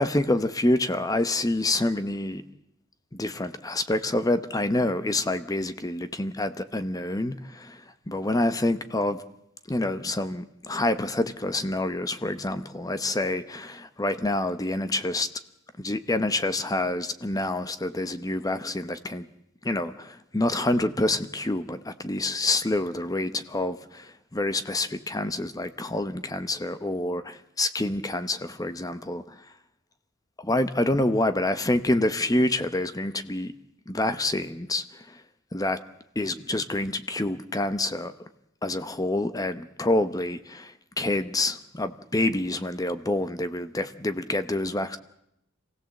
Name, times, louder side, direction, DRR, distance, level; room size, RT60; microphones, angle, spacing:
voice 1, 0.0-2.4 3.1-9.2 9.7-15.3 15.8-19.3 19.6-29.4 30.4-33.5 33.9-35.2 35.5-35.8 36.2-38.1 38.6-45.0, left 2 dB, 15° left, 11 dB, 0.9 m, -27 dB
27.0 x 17.0 x 7.8 m, 0.80 s
head